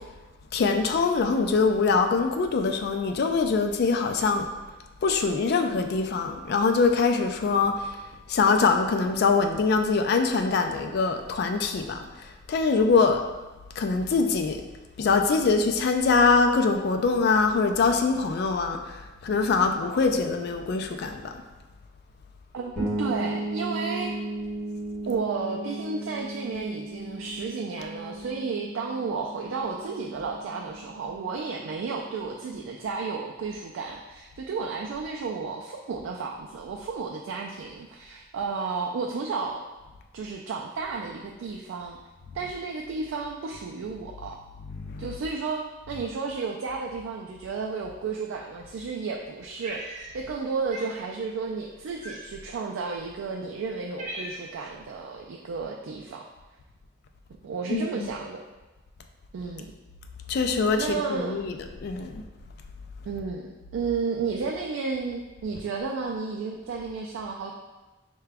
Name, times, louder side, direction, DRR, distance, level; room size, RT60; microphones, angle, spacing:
voice 1, 0.5-4.5 5.0-8.0 8.3-13.2 13.8-14.6 15.0-21.3 44.7-45.2 57.7-58.1 60.3-62.2, left 4 dB, 55° left, 5 dB, 0.3 m, -24 dB
voice 2, 22.5-24.1 25.1-39.6 40.1-42.0 42.3-44.4 45.0-56.3 57.4-58.4 59.3-59.7 60.8-61.4 63.1-67.5, right 4 dB, 80° right, 0 dB, 0.3 m, -32 dB
sound 1, 22.8-32.4, right 1 dB, 15° left, 1.5 m, -36 dB
Cat, 49.6-50.4 50.7-51.0 52.0-52.5 53.2-53.3 53.7-54.7, right 1 dB, 40° right, 0.8 m, -39 dB
4.7 x 2.2 x 3.4 m, 1.2 s
head